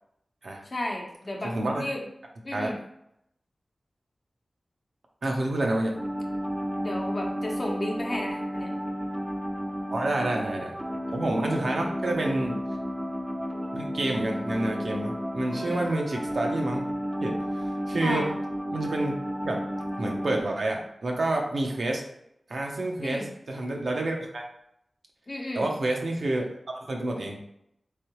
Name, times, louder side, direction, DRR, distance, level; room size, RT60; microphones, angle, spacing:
voice 1, 0.6-2.0 2.4-2.8 6.8-8.7 12.5-12.6 15.5-15.9 18.0-18.3 23.0-23.3 25.3-25.7, left 1 dB, 55° left, 0 dB, 0.8 m, -33 dB
voice 2, 1.4-1.9 2.5-2.7 5.2-6.0 9.9-10.7 11.1-12.6 13.7-16.9 17.2-18.3 18.7-19.2 19.4-19.6 20.0-22.0 22.5-24.4 25.5-26.5 26.7-27.4, right 2 dB, 80° right, 1 dB, 0.7 m, -29 dB
sound 1, 6.0-20.4, equal, 10° right, 0.5 m, -32 dB
3.6 x 3.3 x 3.0 m, 0.77 s
wide cardioid pair, 70°, 0 cm